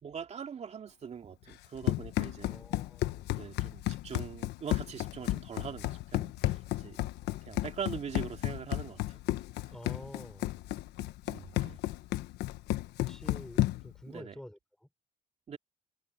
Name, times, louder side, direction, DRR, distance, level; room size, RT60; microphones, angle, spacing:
voice 1, 0.0-2.6 3.3-7.0 7.4-9.2 11.3-11.8 14.1-14.4 15.5-15.6, right 7 dB, 40° right, 2.6 m, -42 dB
Run, 1.5-14.0, left 16 dB, 80° left, 1.3 m, -33 dB
voice 2, 2.4-3.4 9.7-10.6 13.0-14.9, left 1 dB, 5° left, 4.7 m, -49 dB
cardioid pair, 110°, 17 cm